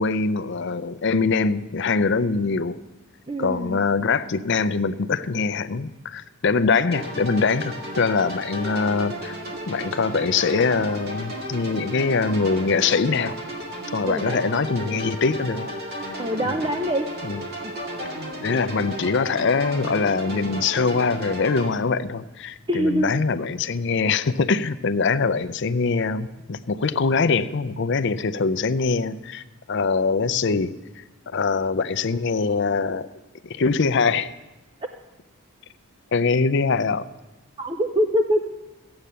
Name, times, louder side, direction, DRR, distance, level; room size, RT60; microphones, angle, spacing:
voice 1, 0.0-2.8 3.4-9.3 9.7-13.4 13.9-15.7 16.4-16.5 17.2-17.4 18.4-30.7 31.3-33.1 33.4-34.3 36.1-37.0, left 4 dB, 55° left, 13 dB, 0.5 m, -23 dB
voice 2, 3.3-3.8 14.0-14.4 16.2-17.1 17.6-17.7 22.7-23.1 37.6-38.7, equal, 20° right, 5 dB, 0.5 m, -24 dB
sound 1, 6.9-21.7, equal, 45° right, 2.2 m, -34 dB
15.0 x 8.8 x 6.8 m, 1.1 s
head